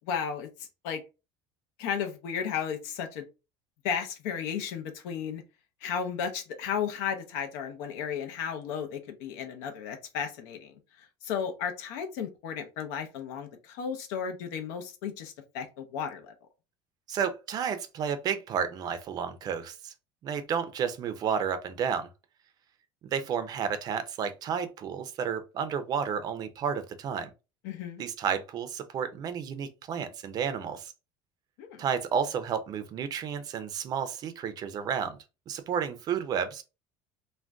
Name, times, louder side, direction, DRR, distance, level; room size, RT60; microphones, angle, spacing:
voice 1, 0.1-1.0 1.8-3.2 3.8-5.4 5.8-16.3 27.6-28.0 31.6-31.8, left 7 dB, 85° left, 0.6 m, -34 dB
voice 2, 17.1-19.9 20.2-22.1 23.0-27.3 28.0-30.9 31.8-35.2 35.5-36.6, right 7 dB, 35° right, 0.4 m, -31 dB
2.5 x 2.2 x 3.3 m
cardioid pair, 150°, 11 cm